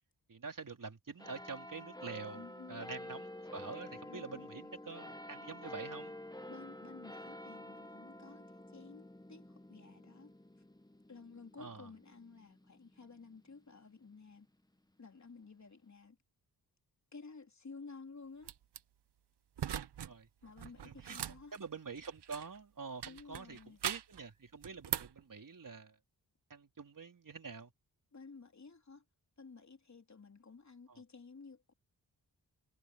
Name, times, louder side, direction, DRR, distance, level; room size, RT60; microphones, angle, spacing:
voice 1, 0.3-6.1 11.6-11.9 20.0-20.3 20.8-21.2 21.5-25.9 26.5-27.7 30.9-31.0, right 5 dB, 50° right, 4.4 m, -46 dB
sound 1, 1.2-14.1 14.7-14.8, left 1 dB, 10° left, 1.6 m, -50 dB
voice 2, 2.3-2.9 4.1-4.5 6.5-10.3 11.1-14.5 15.0-16.2 17.1-18.5 20.4-21.6 23.0-23.8 28.1-29.0 29.4-31.7, left 4 dB, 45° left, 3.6 m, -53 dB
sound 2, 18.4-18.8 19.6-20.1 20.4-22.6 23.0-24.2 24.6-25.2, right 9 dB, 80° right, 1.1 m, -41 dB
cardioid pair, 65°, 40 cm